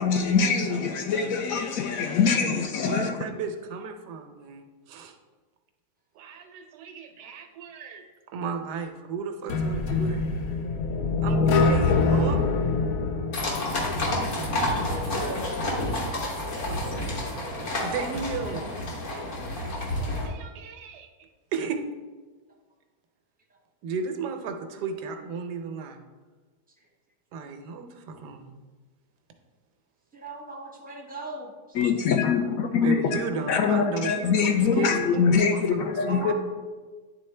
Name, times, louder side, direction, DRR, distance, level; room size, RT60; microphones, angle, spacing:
voice 1, 0.0-3.2 31.7-33.2 33.5-36.3, left 5 dB, 70° left, 0.9 m, -23 dB
voice 2, 2.8-5.2 6.2-8.0 8.3-10.2 11.2-12.4 16.7-16.8 17.8-18.7 19.1-19.2 19.7-19.8 20.3-21.8 23.8-26.0 27.3-28.5 32.8-36.3, right 5 dB, 90° right, 1.3 m, -34 dB
sound 1, 9.5-14.4, left 3 dB, 90° left, 1.2 m, -24 dB
sound 2, 13.3-20.3, left 1 dB, 50° left, 1.4 m, -29 dB
voice 3, 30.1-31.8 36.1-36.3, right 3 dB, 10° right, 0.5 m, -39 dB
9.9 x 3.8 x 3.2 m
omnidirectional pair, 1.7 m